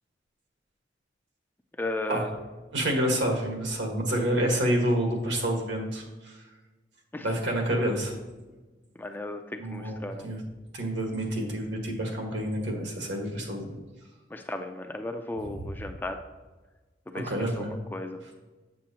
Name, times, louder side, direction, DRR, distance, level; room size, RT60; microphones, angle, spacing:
voice 1, 1.8-2.4 7.1-7.3 9.0-10.3 14.3-16.2 17.1-17.7 17.9-18.2, left 2 dB, 10° left, 5 dB, 0.4 m, -35 dB
voice 2, 2.7-6.4 7.2-8.1 9.6-10.4 10.7-13.8 17.2-17.7, right 1 dB, 75° right, 1 dB, 1.6 m, -28 dB
7.5 x 7.4 x 2.8 m, 1.2 s
head